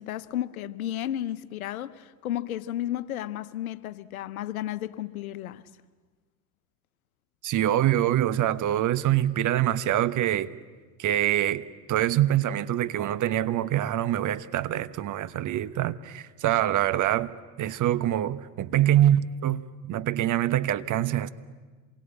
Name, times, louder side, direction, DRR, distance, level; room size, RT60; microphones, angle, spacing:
voice 1, 0.0-5.6, left 12 dB, 90° left, 1.0 m, -33 dB
voice 2, 7.4-10.5 11.0-21.3, right 12 dB, 45° right, 1.3 m, -25 dB
27.0 x 22.5 x 9.9 m
hypercardioid pair, 80°, 42 cm